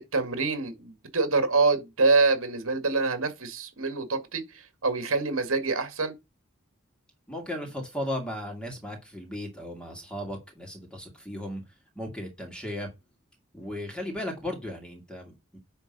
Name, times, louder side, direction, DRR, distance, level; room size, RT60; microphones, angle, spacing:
voice 1, 0.0-6.1, right 3 dB, 65° right, 2.0 m, -26 dB
voice 2, 7.3-11.6 12.0-12.9 13.5-15.6, left 1 dB, 5° left, 2.3 m, -36 dB
10.0 x 3.7 x 5.4 m
head